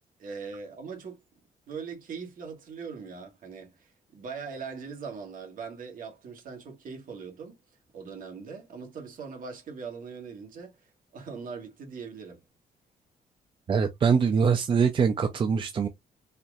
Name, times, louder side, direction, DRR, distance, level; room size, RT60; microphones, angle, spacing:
voice 1, 0.2-1.2 1.7-7.6 7.9-12.4, right 5 dB, 60° right, 1.7 m, -41 dB
voice 2, 13.7-15.9, right 6 dB, 35° right, 0.5 m, -23 dB
4.2 x 2.9 x 2.4 m
cardioid pair, 150°, 16 cm